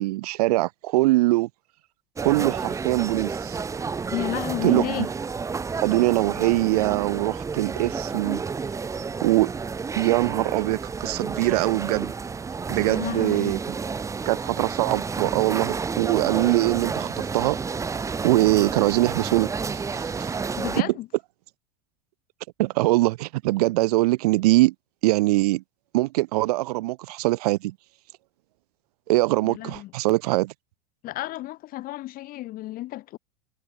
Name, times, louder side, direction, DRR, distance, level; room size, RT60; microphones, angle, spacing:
voice 1, 0.0-1.5 2.2-3.6 4.6-4.9 5.8-8.4 8.9-9.5 10.0-12.1 12.7-13.6 14.3-17.6 18.2-20.3 20.8-20.9 22.6-24.7 25.0-25.6 25.9-27.7 29.1-30.5, right 19 dB, 75° right, 2.4 m, -22 dB
sound 1, 2.2-20.8, right 5 dB, 15° right, 1.2 m, -31 dB
voice 2, 4.1-5.1 12.9-13.5 20.5-21.1 29.4-29.9 31.0-33.2, left 16 dB, 45° left, 6.3 m, -32 dB
supercardioid pair, 120°, 20 cm